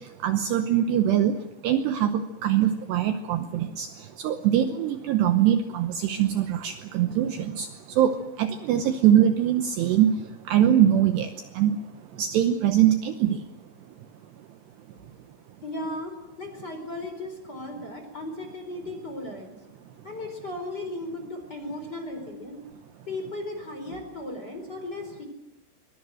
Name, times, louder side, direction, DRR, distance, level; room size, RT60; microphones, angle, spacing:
voice 1, 0.2-1.4 1.6-3.9 4.2-7.7 8.0-10.1 10.5-11.3 11.6-11.8 12.2-13.4, right 10 dB, 75° right, 8 dB, 2.7 m, -22 dB
voice 2, 15.6-19.5 20.0-22.6 23.1-25.2, left 2 dB, 20° left, 5 dB, 4.2 m, -36 dB
23.5 x 21.0 x 7.7 m, 0.95 s
omnidirectional pair, 5.7 m